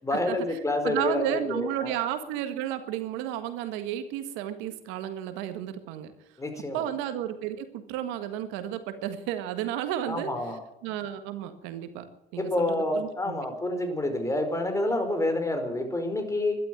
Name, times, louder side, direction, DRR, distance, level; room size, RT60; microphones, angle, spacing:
voice 1, 0.0-1.9 6.4-6.9 10.1-10.6 12.4-16.6, left 2 dB, 15° left, 6 dB, 4.9 m, -28 dB
voice 2, 0.8-6.1 6.7-10.3 10.8-12.1 12.3-13.4, right 11 dB, 75° right, 9 dB, 1.7 m, -32 dB
13.0 x 11.5 x 9.2 m, 0.90 s
supercardioid pair, 85°, 20 cm